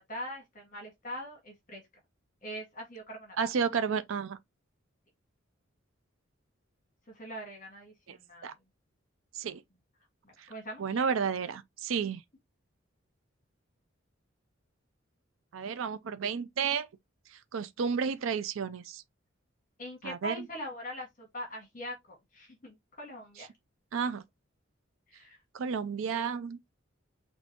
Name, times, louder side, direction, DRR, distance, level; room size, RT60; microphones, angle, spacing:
voice 1, 0.0-1.8 2.4-3.5 7.1-8.5 10.2-11.1 19.8-23.5 25.1-25.4, equal, 40° left, 1.8 m, -42 dB
voice 2, 3.4-4.4 8.1-8.2 8.4-8.5 9.3-9.6 10.4-10.5 10.8-12.2 15.5-16.9 17.3-19.0 20.0-20.5 23.9-24.2 25.5-26.6, right 6 dB, 85° right, 0.5 m, -32 dB
6.2 x 2.6 x 2.9 m
head